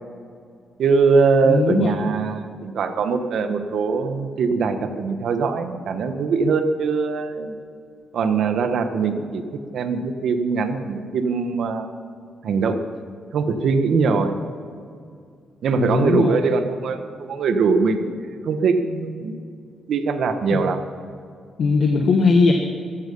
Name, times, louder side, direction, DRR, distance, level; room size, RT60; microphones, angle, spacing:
voice 1, 0.8-7.6 8.1-9.4 9.7-11.9 12.4-12.9 13.3-14.3 15.6-19.4 19.9-20.8, right 4 dB, 65° right, 8 dB, 1.4 m, -22 dB
voice 2, 1.4-2.1 15.7-16.3 20.5-20.6 21.6-22.5, left 4 dB, 55° left, 3 dB, 1.4 m, -19 dB
15.0 x 14.0 x 5.6 m, 2.3 s
cardioid pair, 120°, 0 cm